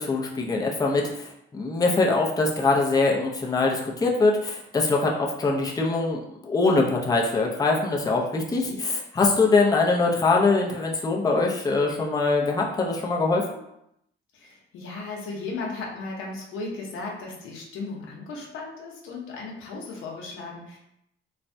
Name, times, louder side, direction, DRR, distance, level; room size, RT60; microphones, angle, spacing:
voice 1, 0.0-13.4, left 3 dB, 20° left, -1 dB, 0.5 m, -23 dB
voice 2, 8.5-8.8 14.3-20.8, left 3 dB, 90° left, -2 dB, 0.8 m, -36 dB
3.2 x 2.1 x 2.6 m, 0.79 s
cardioid pair, 90°, 20 cm